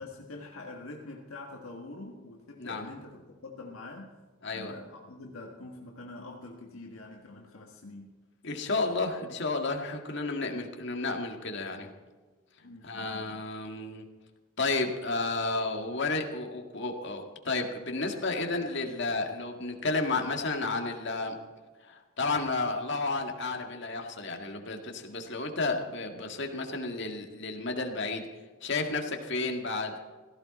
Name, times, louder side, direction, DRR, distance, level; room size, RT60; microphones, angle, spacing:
voice 1, 0.0-4.1 4.5-8.2 12.6-13.4, left 2 dB, 80° left, 0 dB, 1.7 m, -45 dB
voice 2, 8.4-11.9 12.8-14.1 14.6-21.4 21.9-28.2 28.6-29.9, left 3 dB, 55° left, 3 dB, 2.0 m, -32 dB
17.0 x 15.0 x 4.3 m, 1.4 s
head